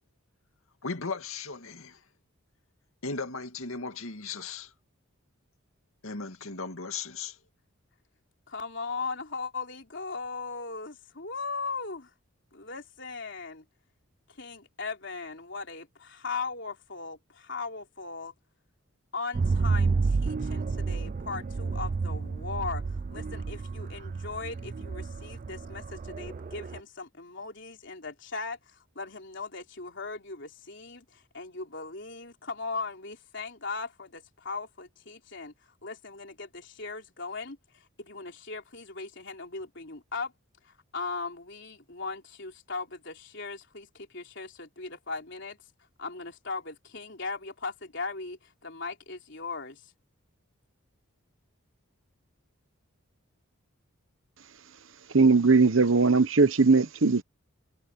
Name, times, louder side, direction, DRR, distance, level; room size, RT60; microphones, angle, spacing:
voice 1, 0.8-2.0 3.0-4.7 6.0-7.4, left 4 dB, 75° left, 2.3 m, -36 dB
voice 2, 8.5-12.1 12.5-13.6 14.4-18.3 19.1-35.5 35.8-40.3 40.6-45.6 46.0-49.9, left 4 dB, 55° left, 3.9 m, -38 dB
sound 1, 19.3-26.8, right 4 dB, 35° right, 0.3 m, -30 dB
voice 3, 55.1-57.2, right 4 dB, 65° right, 1.0 m, -20 dB
head